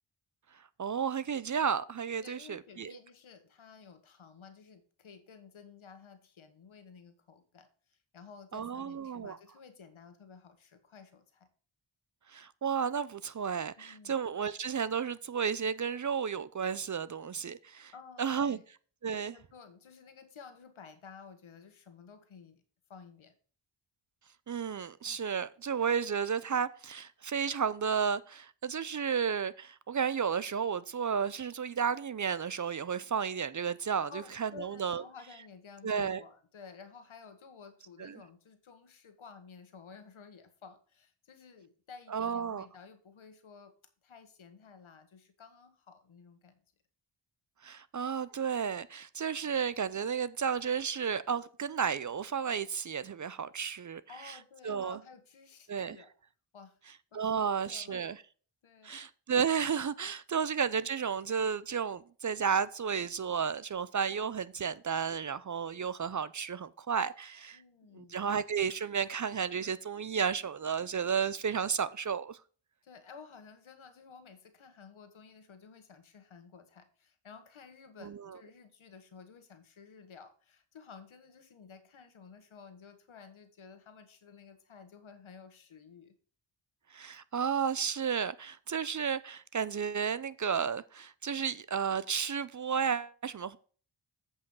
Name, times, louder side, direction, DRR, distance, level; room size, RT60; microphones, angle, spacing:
voice 1, 0.8-3.0 8.5-9.4 12.3-17.9 18.2-18.6 19.0-19.3 24.5-35.0 35.8-36.2 38.0-38.2 42.1-42.7 47.6-54.4 54.6-55.0 55.7-56.0 57.1-58.2 58.8-67.6 67.9-72.4 78.0-78.2 86.9-93.6, right 7 dB, 40° right, 0.5 m, -32 dB
voice 2, 2.2-11.5 13.8-14.2 17.9-18.6 19.1-22.6 22.9-23.3 34.1-43.7 44.0-46.6 54.1-56.1 56.5-56.8 57.1-58.0 58.6-59.0 67.5-68.3 72.8-86.1, left 5 dB, 75° left, 1.5 m, -53 dB
8.2 x 5.4 x 5.4 m
cardioid pair, 65°, 49 cm